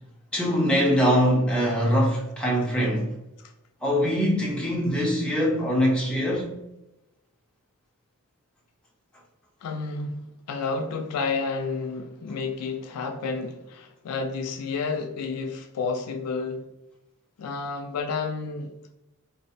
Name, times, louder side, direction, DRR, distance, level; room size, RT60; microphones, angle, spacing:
voice 1, 0.3-3.1 3.8-6.6, equal, 5° left, 0.6 m, -23 dB
voice 2, 9.6-16.6 17.4-18.9, left 4 dB, 90° left, 0.4 m, -31 dB
2.5 x 2.0 x 2.5 m
head